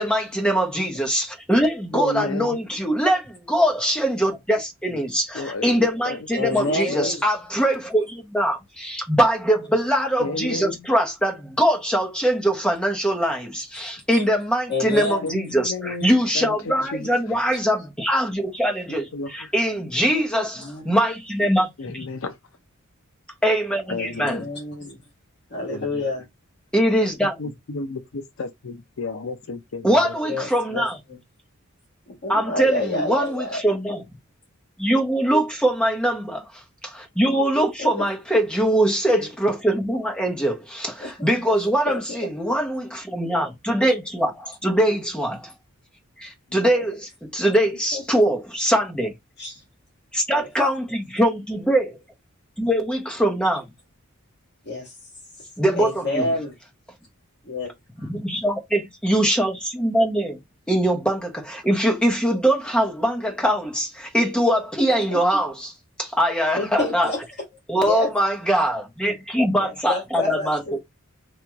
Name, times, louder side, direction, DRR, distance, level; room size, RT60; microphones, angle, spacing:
voice 1, 0.0-22.1 23.4-24.4 26.7-27.3 29.8-31.0 32.3-34.0 34.8-45.5 46.2-49.1 50.1-52.0 52.6-53.6 55.6-56.3 58.0-60.4 60.7-65.7 66.0-67.1 67.7-70.6, right 1 dB, 5° left, 0.8 m, -22 dB
voice 2, 1.9-2.6 4.9-5.0 5.3-7.1 10.2-10.8 15.2-17.1 18.9-19.5 21.8-22.4 23.9-24.5 25.7-26.0 27.2-30.1, left 3 dB, 70° left, 0.6 m, -32 dB
voice 3, 6.3-7.2 13.7-14.2 14.7-15.3 20.5-20.8 23.9-25.0 25.5-26.2 30.2-30.8 32.1-33.6 37.8-38.0 41.0-41.1 41.8-42.2 47.9-48.0 49.4-49.6 50.3-50.5 54.6-54.9 55.8-56.5 57.4-57.7 58.0-58.1 65.1-65.2 66.5-67.2 67.8-68.1 69.6-70.8, left 2 dB, 55° left, 1.7 m, -28 dB
3.0 x 2.9 x 3.5 m
head